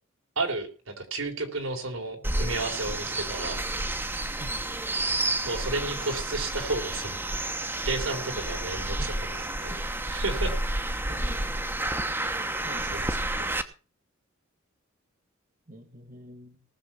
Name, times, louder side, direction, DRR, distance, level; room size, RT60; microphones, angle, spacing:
voice 1, 0.4-3.7 5.4-7.5 7.8-10.6 12.9-13.5, right 3 dB, 90° right, 3 dB, 3.7 m, -33 dB
sound 1, 2.2-13.6, right 1 dB, 10° right, 1.0 m, -30 dB
voice 2, 11.1-11.6 12.6-13.2 15.7-16.6, right 1 dB, 40° right, 8 dB, 1.6 m, -45 dB
19.0 x 7.2 x 5.7 m, 0.37 s
head